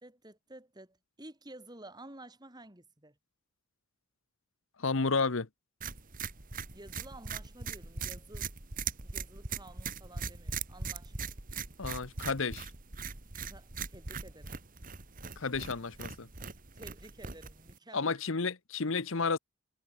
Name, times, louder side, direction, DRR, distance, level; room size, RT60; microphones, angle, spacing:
voice 1, 0.0-3.1 6.7-8.5 9.0-11.3 13.5-14.6 16.7-18.1, right 1 dB, 20° right, 3.1 m, -52 dB
voice 2, 4.8-5.5 11.8-12.7 15.4-16.3 17.9-19.4, left 4 dB, 60° left, 1.0 m, -31 dB
sound 1, 5.8-17.8, right 5 dB, 40° right, 2.1 m, -40 dB
head